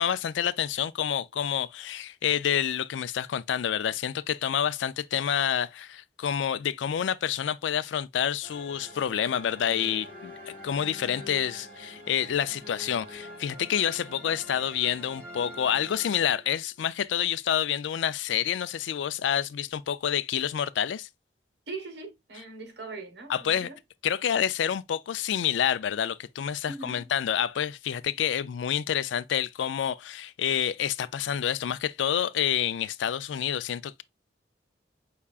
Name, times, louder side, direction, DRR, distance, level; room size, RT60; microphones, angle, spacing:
voice 1, 0.0-21.1 23.3-23.7 24.0-34.0, left 9 dB, 90° left, 0.4 m, -28 dB
sound 1, 8.4-16.8, equal, 10° right, 2.8 m, -45 dB
voice 2, 21.7-23.8 26.7-27.1, right 3 dB, 70° right, 1.4 m, -41 dB
5.6 x 3.5 x 2.4 m
head